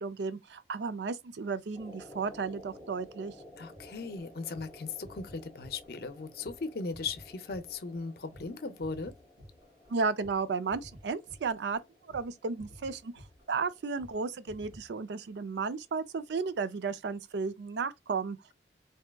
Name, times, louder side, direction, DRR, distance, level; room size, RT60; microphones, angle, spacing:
voice 1, 0.0-3.3 9.9-11.8 12.1-13.2 13.5-18.4, right 4 dB, 75° right, 0.4 m, -33 dB
sound 1, 1.7-17.0 17.3-17.4, left 1 dB, ahead, 0.9 m, -55 dB
voice 2, 3.6-9.1, left 4 dB, 60° left, 0.5 m, -38 dB
sound 2, 3.7-10.4 10.7-11.8 12.1-12.3 12.6-13.7 14.0-14.2 14.5-14.9, equal, 25° right, 2.1 m, -53 dB
3.4 x 2.7 x 2.2 m
head